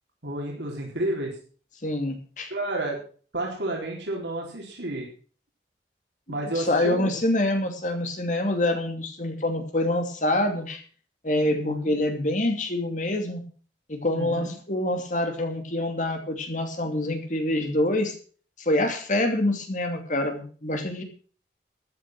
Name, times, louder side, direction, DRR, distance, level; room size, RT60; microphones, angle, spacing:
voice 1, 0.2-1.3 2.5-3.0 3.3-5.1 6.3-7.2 11.4-11.9 14.1-14.5, right 1 dB, 85° right, -2 dB, 4.1 m, -31 dB
voice 2, 1.8-2.5 6.6-10.8 11.2-13.4 13.9-18.1 18.6-21.0, left 1 dB, 45° left, 5 dB, 2.7 m, -26 dB
14.0 x 9.9 x 6.1 m, 0.42 s
head